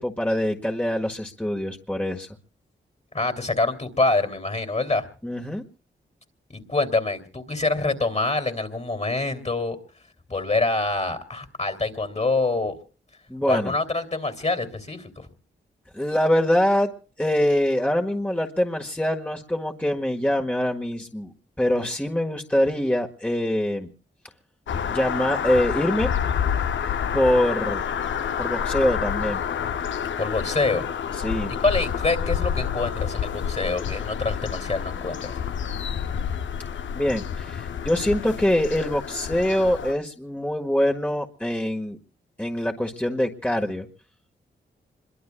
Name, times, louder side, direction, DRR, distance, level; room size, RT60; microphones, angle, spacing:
voice 1, 0.0-2.3 5.2-5.6 13.3-13.7 15.9-16.9 17.2-21.3 21.6-23.9 24.9-26.1 27.1-27.8 28.4-29.4 31.2-31.5 37.0-42.0 42.4-43.9, left 1 dB, 5° left, 1 dB, 1.7 m, -24 dB
voice 2, 3.1-5.1 6.5-9.8 10.3-12.8 13.5-15.3 30.2-30.9 31.6-35.4, left 3 dB, 35° left, 8 dB, 2.8 m, -25 dB
sound 1, 24.7-39.9, left 8 dB, 80° left, 0.7 m, -28 dB
26.0 x 22.5 x 2.3 m, 0.39 s
cardioid pair, 50°, 19 cm